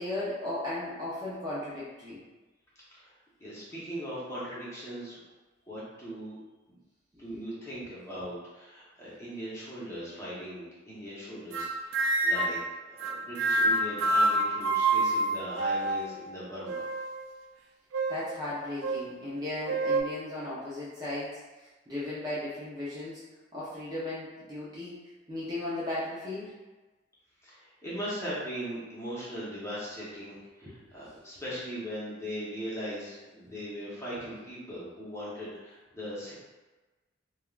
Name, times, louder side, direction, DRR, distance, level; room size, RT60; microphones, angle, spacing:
voice 1, 0.0-2.2 18.1-23.2 23.5-25.0 25.3-26.6 30.6-31.1, left 1 dB, 20° right, -9 dB, 0.5 m, -36 dB
voice 2, 3.4-5.2 5.7-6.3 6.7-6.8 7.2-12.6 12.9-16.9 27.4-36.3, equal, 15° left, -8 dB, 0.8 m, -39 dB
sound 1, 11.5-12.6 13.0-16.2 16.7-17.3 17.9-18.3 18.8-19.0 19.7-20.0, right 2 dB, 80° right, 0.3 m, -27 dB
3.4 x 2.2 x 2.3 m, 1.2 s
head